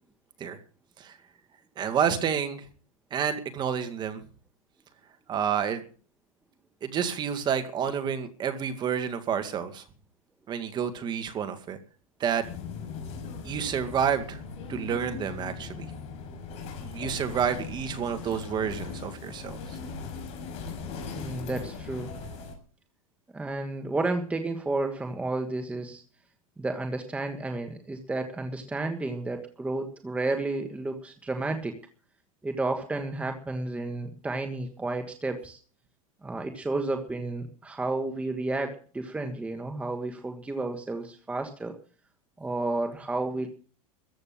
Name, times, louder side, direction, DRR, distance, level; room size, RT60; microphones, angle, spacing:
voice 1, 1.8-2.7 3.1-4.2 5.3-5.8 6.8-9.8 10.5-11.8 12.2-12.4 13.4-14.4 14.7-15.9 16.8-19.8, right 8 dB, 25° right, 9 dB, 2.0 m, -29 dB
sound 1, 12.4-22.5, left 5 dB, 35° left, 5.7 m, -39 dB
voice 2, 21.1-22.1 23.3-26.0 26.6-31.7 32.4-35.6 36.2-41.8 42.4-43.5, right 2 dB, 5° right, 5 dB, 1.5 m, -31 dB
14.5 x 7.9 x 8.9 m, 0.40 s
supercardioid pair, 145°, 18 cm